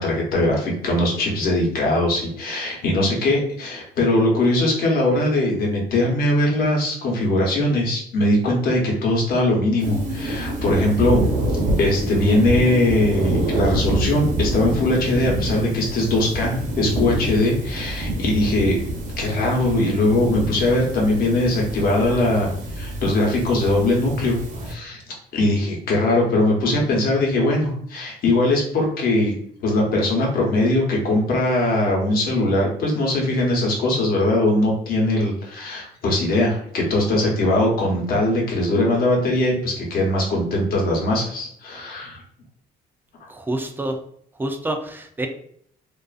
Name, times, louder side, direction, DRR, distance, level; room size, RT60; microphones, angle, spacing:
voice 1, 0.0-11.2 11.8-18.8 19.2-22.5 22.7-24.4 24.6-25.0 25.3-29.3 29.6-42.2, left 1 dB, 60° left, -1 dB, 0.9 m, -20 dB
sound 1, 9.8-24.7, right 1 dB, 45° right, 0.7 m, -26 dB
voice 2, 43.3-44.0 44.4-45.3, right 1 dB, 10° right, 5 dB, 0.3 m, -27 dB
2.4 x 2.3 x 2.4 m, 0.64 s
cardioid pair, 110°, 17 cm